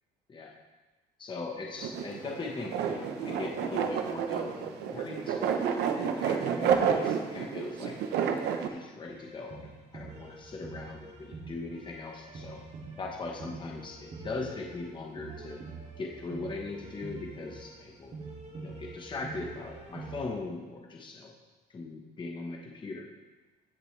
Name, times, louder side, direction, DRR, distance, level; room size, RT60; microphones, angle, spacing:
voice 1, 1.2-5.7 5.9-7.9 8.7-12.6 13.0-15.6 16.0-18.1 18.6-21.3 21.7-23.0, left 3 dB, 30° left, 0 dB, 1.3 m, -40 dB
sound 1, 1.8-8.7, right 7 dB, 80° right, 1.0 m, -30 dB
sound 2, 9.0-20.3, right 3 dB, 40° right, 2.6 m, -45 dB
16.0 x 6.8 x 3.3 m, 1.2 s
cardioid pair, 110°, 17 cm